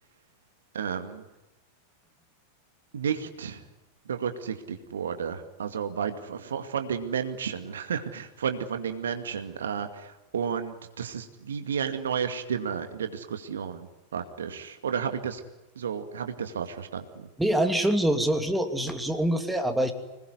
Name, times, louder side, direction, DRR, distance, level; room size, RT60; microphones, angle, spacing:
voice 1, 0.7-1.2 2.9-3.6 4.1-15.4 15.8-17.3, right 7 dB, 65° right, 7 dB, 2.3 m, -32 dB
voice 2, 17.4-19.9, right 1 dB, 5° right, 5 dB, 2.8 m, -25 dB
26.5 x 20.5 x 9.6 m, 1.1 s
figure-of-eight pair, 90°, 0 cm